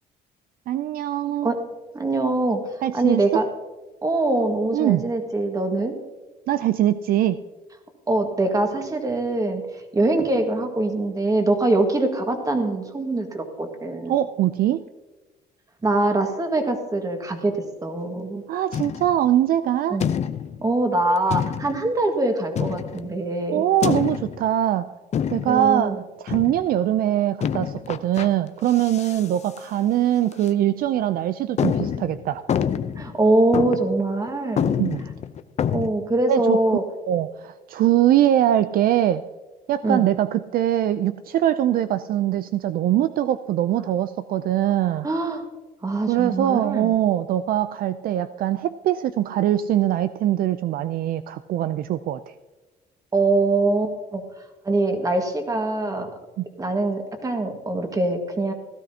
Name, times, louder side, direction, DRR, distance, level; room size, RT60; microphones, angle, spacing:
voice 1, 0.7-1.5 2.8-3.4 4.7-5.1 6.5-7.4 14.1-14.9 18.5-20.0 23.5-24.9 25.3-32.5 34.7-35.0 36.3-39.3 39.7-45.1 46.1-52.2 56.4-56.5, right 12 dB, 60° right, 12 dB, 0.4 m, -22 dB
voice 2, 1.9-2.6 2.9-3.5 4.0-5.9 8.1-9.6 9.9-14.2 15.8-17.5 17.8-18.4 19.9-20.1 20.6-23.6 25.4-26.0 33.0-34.7 35.7-36.8 39.8-40.1 45.0-45.4 45.8-46.9 53.1-54.2 54.7-56.1 56.6-58.5, right 2 dB, 20° right, 4 dB, 1.7 m, -23 dB
sound 1, 18.7-19.3 20.0-20.6 21.3-21.9 22.6-23.1 23.8-24.5 25.1-25.7 26.3-26.7 27.4-28.3 28.7-29.3 29.6-29.7 30.3-30.5 31.0-31.1 31.6-33.1 33.5-34.0 34.3-34.4 34.6-35.9, left 8 dB, 40° left, 0.6 m, -26 dB
16.5 x 12.5 x 2.8 m, 1.2 s
cardioid pair, 110°, 17 cm